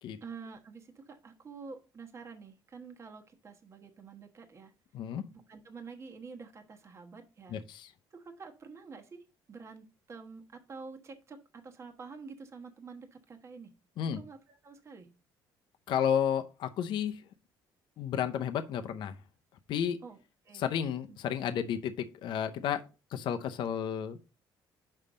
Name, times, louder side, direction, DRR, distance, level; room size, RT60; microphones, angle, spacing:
voice 1, 0.2-4.7 5.3-7.6 8.1-13.7 14.1-15.2 20.0-20.2 20.4-20.6, right 5 dB, 35° right, 4 dB, 1.1 m, -48 dB
voice 2, 7.5-7.9 14.0-14.2 15.9-17.2 18.0-19.2 19.7-20.0 20.5-22.8 23.1-24.2, left 8 dB, 65° left, 8 dB, 0.7 m, -32 dB
5.5 x 5.5 x 5.0 m, 0.30 s
cardioid pair, 115°, 9 cm